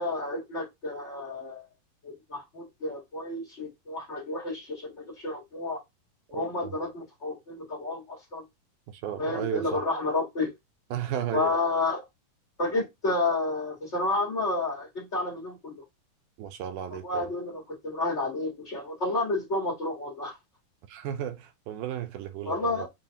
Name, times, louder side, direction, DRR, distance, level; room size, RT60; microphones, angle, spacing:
voice 1, 0.0-1.6 2.0-5.8 6.3-8.4 9.2-10.5 11.3-12.0 12.6-15.8 16.9-20.3 22.4-22.9, left 2 dB, 65° left, 0.6 m, -30 dB
voice 2, 6.3-6.7 8.9-9.9 10.9-11.5 16.4-17.3 20.9-22.9, right 10 dB, 80° right, 2.0 m, -34 dB
5.6 x 2.5 x 2.7 m
omnidirectional pair, 3.8 m